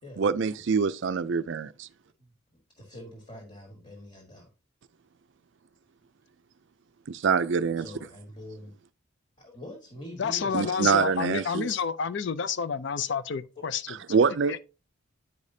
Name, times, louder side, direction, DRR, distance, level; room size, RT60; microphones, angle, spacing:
voice 1, 0.2-1.9 7.1-7.9 10.5-11.7 14.1-14.6, right 5 dB, 55° right, 0.4 m, -25 dB
voice 2, 2.8-4.5 7.8-8.7 9.4-10.9 13.6-13.7, left 1 dB, 30° left, 1.7 m, -44 dB
voice 3, 10.2-14.0 14.5-14.6, left 6 dB, 55° left, 0.4 m, -29 dB
9.5 x 5.0 x 2.7 m
head